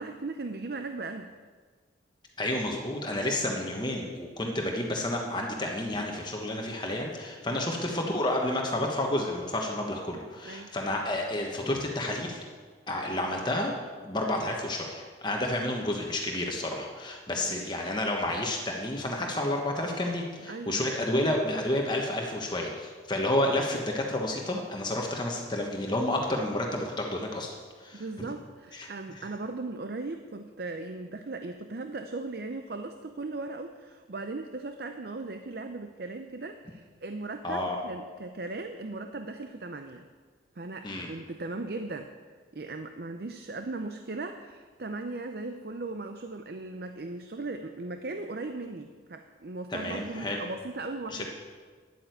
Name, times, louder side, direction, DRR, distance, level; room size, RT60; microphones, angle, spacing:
voice 1, 0.0-1.3 7.5-7.6 10.4-10.7 17.4-17.6 20.5-20.8 27.9-40.1 40.6-42.1 42.5-51.2, right 3 dB, 55° right, 7 dB, 0.6 m, -38 dB
voice 2, 2.4-12.4 12.9-13.7 14.0-28.3 28.7-28.9 37.4-37.8 40.8-41.1 49.7-50.4 51.1-51.3, left 1 dB, 25° left, 0 dB, 1.2 m, -30 dB
11.0 x 8.9 x 7.9 m, 1.5 s
head